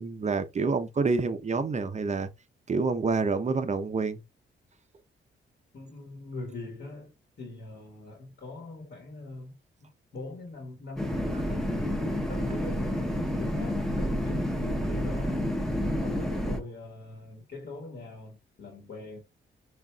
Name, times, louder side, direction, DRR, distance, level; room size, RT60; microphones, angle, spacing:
voice 1, 0.0-2.3 2.7-4.2, right 4 dB, 35° right, 0.6 m, -27 dB
voice 2, 5.7-15.4 16.0-19.2, left 2 dB, 60° left, 1.3 m, -43 dB
sound 1, 11.0-16.6, equal, ahead, 0.7 m, -29 dB
4.5 x 2.4 x 2.2 m
supercardioid pair, 60°, 21 cm